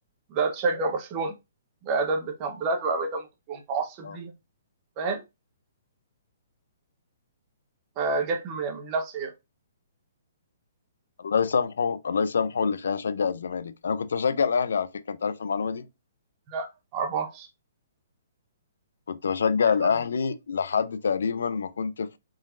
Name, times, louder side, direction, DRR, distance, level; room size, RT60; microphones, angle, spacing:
voice 1, 0.3-1.3 1.8-4.3 5.0-5.2 8.0-9.3 16.5-17.5 19.8-19.9, right 4 dB, 35° right, 0.9 m, -29 dB
voice 2, 11.2-15.9 19.1-22.2, left 6 dB, 80° left, 0.4 m, -26 dB
4.1 x 3.8 x 2.4 m
hypercardioid pair, 145°, 0 cm